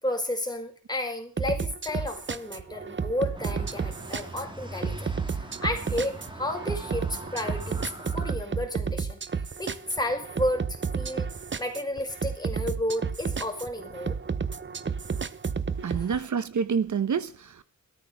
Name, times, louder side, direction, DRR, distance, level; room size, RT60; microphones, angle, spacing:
voice 1, 0.0-11.3 11.6-14.2 15.8-16.2, left 1 dB, 15° left, 5.2 m, -32 dB
sound 1, 1.4-16.1, right 6 dB, 40° right, 0.9 m, -32 dB
sound 2, 3.3-8.3, right 1 dB, 15° right, 3.1 m, -42 dB
voice 2, 15.8-17.6, right 6 dB, 75° right, 1.2 m, -28 dB
15.5 x 13.5 x 6.7 m
wide cardioid pair, 105°, 30 cm